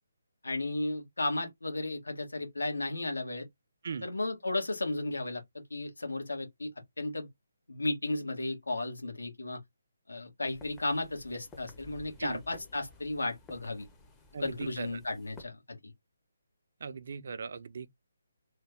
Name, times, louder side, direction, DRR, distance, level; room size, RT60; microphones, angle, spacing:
voice 1, 0.4-3.5 4.0-6.7 7.0-7.3 7.7-9.6 10.1-13.8 14.4-15.9, left 2 dB, 80° left, 1.4 m, -34 dB
sound 1, 10.4-15.4, left 3 dB, 10° left, 0.6 m, -54 dB
voice 2, 14.3-14.9 16.8-17.9, right 5 dB, 55° right, 0.5 m, -39 dB
3.2 x 2.2 x 3.4 m
figure-of-eight pair, 150°, 0 cm